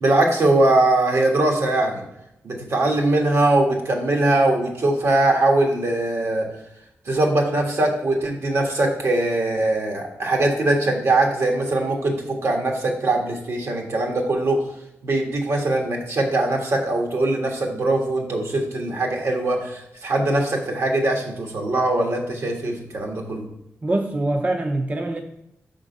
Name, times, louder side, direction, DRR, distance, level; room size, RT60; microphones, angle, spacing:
voice 1, 0.0-2.0 2.4-6.4 7.0-14.7 15.0-23.5, right 2 dB, 70° right, 1 dB, 1.4 m, -21 dB
voice 2, 23.8-25.2, right 2 dB, 30° right, 4 dB, 0.6 m, -24 dB
5.6 x 3.7 x 5.2 m, 0.83 s
cardioid pair, 70°, 5 cm